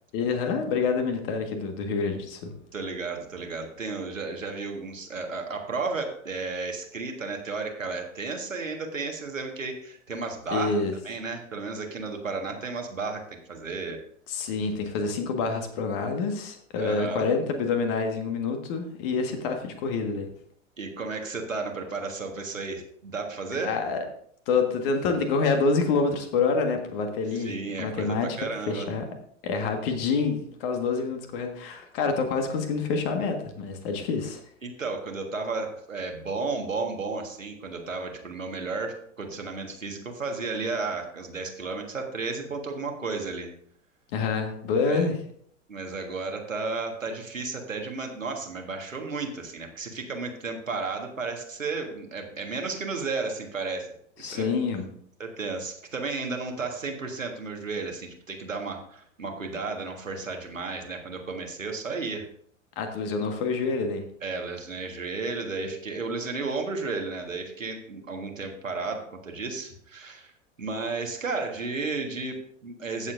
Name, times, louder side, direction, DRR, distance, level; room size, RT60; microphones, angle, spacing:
voice 1, 0.1-2.5 10.5-10.9 14.3-20.3 23.6-24.0 24.5-28.3 28.7-29.0 29.4-34.4 44.1-45.2 54.2-54.9 62.7-64.0, left 4 dB, 45° left, 5 dB, 1.7 m, -27 dB
voice 2, 2.7-14.0 16.8-17.3 20.8-23.8 27.3-28.9 34.6-43.5 44.8-45.1 45.7-53.9 54.2-54.5 55.2-62.3 64.2-70.3 70.6-73.1, right 4 dB, 80° right, 3 dB, 1.7 m, -33 dB
15.0 x 7.1 x 2.6 m, 0.64 s
figure-of-eight pair, 90°, 38 cm